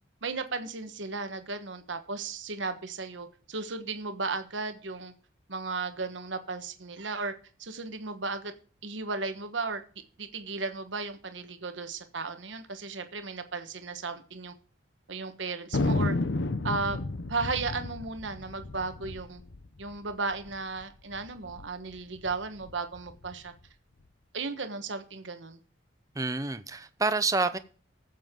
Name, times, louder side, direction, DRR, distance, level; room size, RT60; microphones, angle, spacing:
voice 1, 0.2-5.1 5.5-7.3 7.6-8.5 8.8-9.8 10.2-14.5 15.1-16.1 16.6-17.0 17.3-19.4 19.8-23.5 24.3-25.6, right 4 dB, 75° right, 1.2 m, -35 dB
Thunder, 15.7-20.6 20.8-20.9 21.1-21.7 22.2-23.4, left 2 dB, 70° left, 0.8 m, -32 dB
voice 2, 26.2-27.6, right 3 dB, 20° right, 0.7 m, -28 dB
19.5 x 7.4 x 3.7 m
head